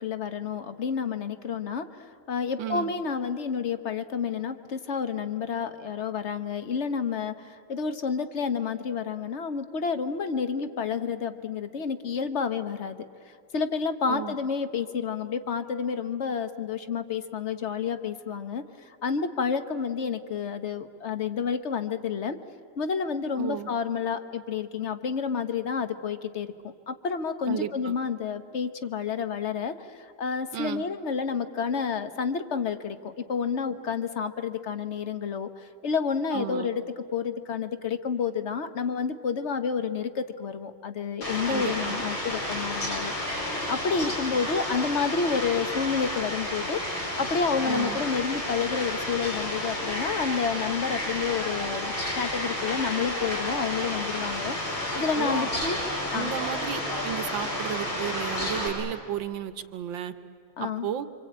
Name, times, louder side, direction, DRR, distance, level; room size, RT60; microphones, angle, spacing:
voice 1, 0.0-1.9 2.3-13.1 13.5-18.6 19.0-22.4 22.8-35.5 35.8-43.1 43.7-55.8 56.1-56.3 60.6-60.9, left 6 dB, 50° left, 10 dB, 0.9 m, -30 dB
voice 2, 2.6-2.9 14.1-14.3 23.4-23.7 27.5-27.9 30.5-30.8 36.3-36.7 41.5-42.0 47.6-48.0 55.2-55.5 56.1-60.1 60.6-61.1, right 10 dB, 70° right, 11 dB, 1.6 m, -33 dB
Fowl, 41.2-58.7, left 1 dB, 70° left, 6.3 m, -31 dB
26.0 x 25.5 x 8.7 m, 2.2 s
omnidirectional pair, 2.3 m